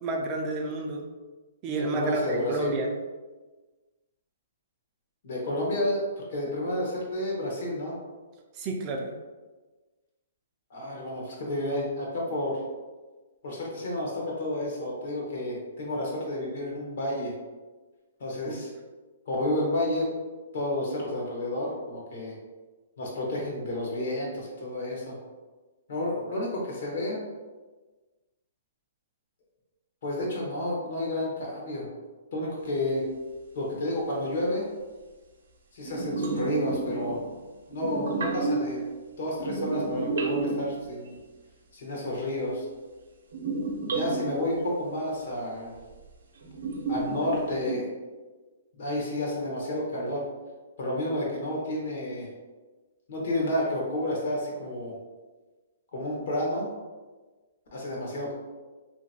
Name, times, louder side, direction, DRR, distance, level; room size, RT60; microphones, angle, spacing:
voice 1, 0.0-1.1 1.6-2.9 8.6-9.1 18.4-18.6, right 2 dB, 25° right, 2 dB, 0.3 m, -30 dB
voice 2, 1.9-2.7 5.2-8.0 10.7-12.6 13.4-17.3 18.2-18.7 19.3-20.1 20.5-22.3 23.0-25.2 25.9-27.2 30.0-31.9 32.3-33.0 33.5-34.7 35.7-37.2 37.7-38.8 39.2-41.1 41.7-42.7 43.9-45.7 46.9-47.9 48.7-50.2 50.8-52.3 53.1-55.0 55.9-56.7 57.7-58.3, left 1 dB, 60° left, -2 dB, 1.0 m, -30 dB
sound 1, 35.8-37.4 37.7-38.8 39.4-41.1 43.3-44.5 45.9-46.0 46.4-47.7, right 3 dB, 85° right, 0.6 m, -30 dB
2.8 x 2.5 x 2.7 m, 1.3 s
hypercardioid pair, 160°, 0 cm